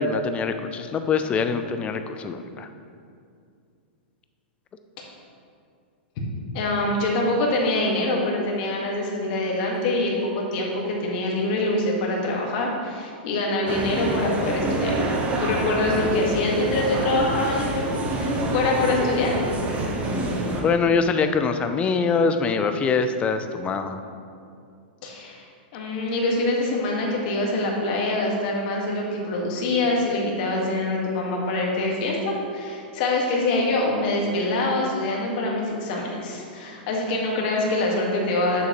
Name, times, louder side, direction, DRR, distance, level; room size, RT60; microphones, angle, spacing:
voice 1, 0.0-2.7 20.6-24.0, left 5 dB, 20° left, 8 dB, 0.4 m, -24 dB
voice 2, 6.5-14.9 15.4-17.8 18.1-19.4 25.0-25.4 25.7-38.7, left 2 dB, 50° left, -1 dB, 1.7 m, -25 dB
sound 1, 13.7-20.6, right 1 dB, 25° right, 1.0 m, -26 dB
8.2 x 6.7 x 3.1 m, 2.4 s
hypercardioid pair, 130°, 6 cm